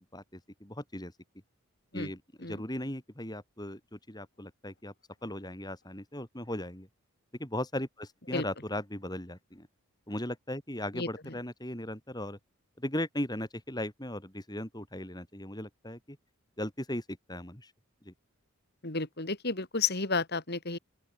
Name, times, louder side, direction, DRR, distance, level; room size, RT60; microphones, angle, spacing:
voice 1, 0.1-1.1 1.9-4.9 5.2-6.9 7.4-9.7 10.1-12.4 12.8-16.2 16.6-17.7 18.0-18.1, left 1 dB, 20° left, 5.3 m, -38 dB
voice 2, 18.8-20.8, left 4 dB, 45° left, 3.0 m, -31 dB
open air
head